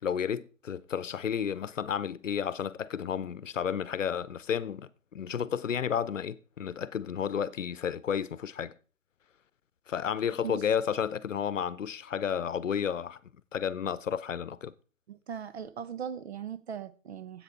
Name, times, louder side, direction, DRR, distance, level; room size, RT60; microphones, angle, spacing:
voice 1, 0.0-8.7 9.9-13.2 13.5-14.7, left 8 dB, 70° left, 0.8 m, -32 dB
voice 2, 15.1-17.4, right 8 dB, 55° right, 1.1 m, -39 dB
10.0 x 8.0 x 4.6 m
figure-of-eight pair, 140°, 39 cm